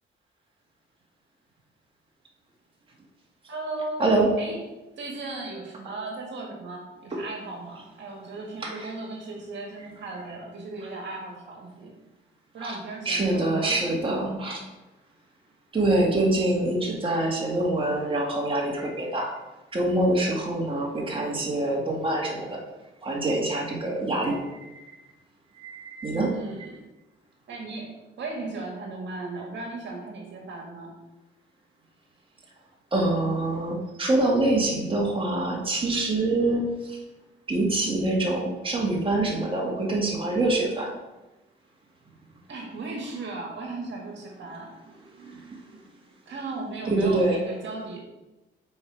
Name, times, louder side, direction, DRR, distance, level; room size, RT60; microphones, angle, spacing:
voice 1, 3.5-4.0 4.4-4.6 5.0-11.9 12.5-13.8 26.1-26.8 27.5-30.9 42.5-44.7 46.3-48.0, right 3 dB, 65° right, 0 dB, 1.8 m, -36 dB
voice 2, 13.1-14.6 15.7-19.3 19.7-22.6 23.0-24.4 25.6-26.3 32.9-37.0 37.5-40.9 45.2-45.6 46.9-47.4, right 2 dB, 25° right, -2 dB, 2.1 m, -25 dB
7.1 x 4.9 x 4.8 m, 1.0 s
cardioid pair, 90°, 20 cm